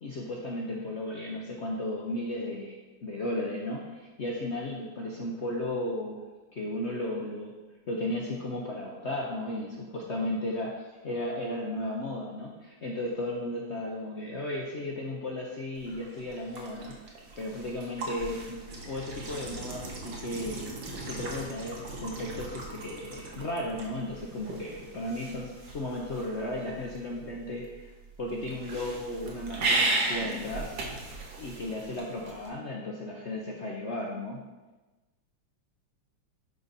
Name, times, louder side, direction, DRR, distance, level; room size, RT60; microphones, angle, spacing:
voice 1, 0.0-6.3 6.5-7.5 7.9-20.7 21.1-27.9 28.2-31.0 31.4-34.4, left 1 dB, 60° left, -2 dB, 0.7 m, -35 dB
sound 1, 15.7-32.5, right 2 dB, 60° right, 1.7 m, -36 dB
10.5 x 4.0 x 4.0 m, 1.2 s
omnidirectional pair, 2.1 m